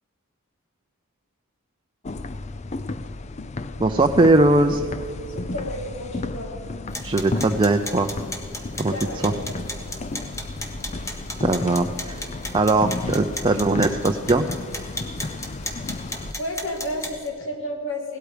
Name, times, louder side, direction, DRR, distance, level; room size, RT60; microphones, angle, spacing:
sound 1, 2.0-16.3, left 2 dB, 35° left, 0.5 m, -33 dB
voice 1, 3.8-4.8 7.0-8.1 8.8-8.9 9.2-9.3 11.4-12.2 12.5-14.5, right 2 dB, 25° right, 5 dB, 0.5 m, -20 dB
voice 2, 5.2-6.5 8.9-9.7 15.6-15.8 16.4-18.2, left 1 dB, 60° left, 3 dB, 2.4 m, -32 dB
sound 2, 6.9-17.3, left 1 dB, 15° left, 1.4 m, -36 dB
17.5 x 12.5 x 5.0 m, 2.3 s
head